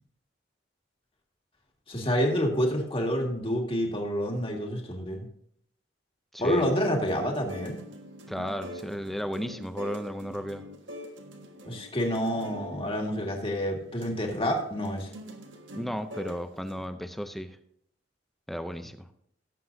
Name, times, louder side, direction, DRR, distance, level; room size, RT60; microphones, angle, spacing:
voice 1, 1.9-5.3 6.4-7.8 11.6-15.1, equal, 30° left, 1 dB, 1.9 m, -28 dB
sound 1, 6.5-16.9, equal, 65° right, 1.5 m, -44 dB
voice 2, 8.3-10.7 15.7-17.6 18.5-19.0, equal, ahead, 8 dB, 0.5 m, -34 dB
17.5 x 7.7 x 2.7 m, 0.71 s
head